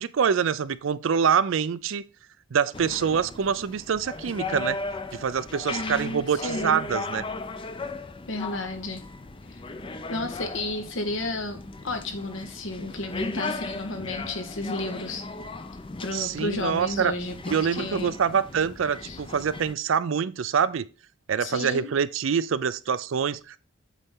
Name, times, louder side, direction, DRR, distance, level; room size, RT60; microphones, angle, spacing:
voice 1, 0.0-2.0 2.5-4.8 5.1-7.2 16.1-17.1 17.5-20.8 21.3-23.6, right 7 dB, 75° right, 0.4 m, -25 dB
sound 1, 2.7-19.7, left 3 dB, 25° left, 0.5 m, -37 dB
voice 2, 5.7-6.9 8.3-9.0 9.5-9.6 10.1-11.6 11.8-15.2 16.0-18.1 19.0-19.2 21.4-21.9, left 2 dB, 75° left, 1.4 m, -32 dB
8.1 x 4.2 x 3.7 m
head